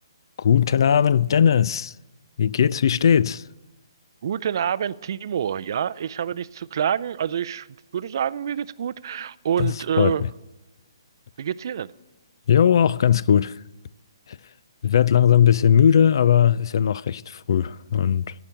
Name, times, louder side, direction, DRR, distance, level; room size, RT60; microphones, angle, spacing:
voice 1, 0.4-1.9 2.4-3.4 9.6-10.2 12.5-13.6 14.3-14.4 14.8-18.3, left 8 dB, 55° left, 0.3 m, -19 dB
voice 2, 4.2-7.7 7.9-10.2 11.4-11.9, right 8 dB, 50° right, 0.4 m, -27 dB
15.5 x 5.9 x 9.9 m
hypercardioid pair, 160°, 3 cm